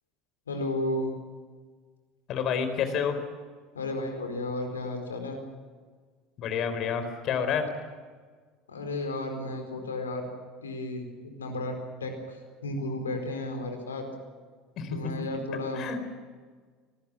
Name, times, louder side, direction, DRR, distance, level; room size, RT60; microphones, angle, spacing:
voice 1, 0.5-1.1 3.7-5.4 8.7-10.3 10.6-11.1 11.4-14.1 14.9-16.1, left 2 dB, 85° left, 5 dB, 4.4 m, -33 dB
voice 2, 2.3-3.2 6.4-7.7 14.8-15.0 15.7-16.0, left 7 dB, 50° left, 9 dB, 4.2 m, -29 dB
25.5 x 19.5 x 7.3 m, 1.5 s
figure-of-eight pair, 70°, 0 cm